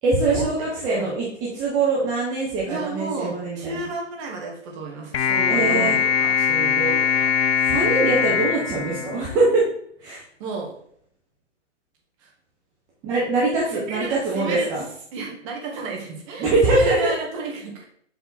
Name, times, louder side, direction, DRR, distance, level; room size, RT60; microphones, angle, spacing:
voice 1, 0.0-3.9 5.5-6.0 7.7-9.6 10.0-10.2 13.0-14.8 16.4-17.1, right 3 dB, 10° right, -6 dB, 0.6 m, -22 dB
voice 2, 2.7-7.3 10.4-10.7 12.2-12.3 13.7-14.7 15.1-17.8, right 3 dB, 25° right, 0 dB, 1.4 m, -32 dB
sound 1, 5.1-9.6, left 7 dB, 60° left, 0.6 m, -22 dB
7.3 x 3.5 x 4.0 m, 0.64 s
hypercardioid pair, 150°, 37 cm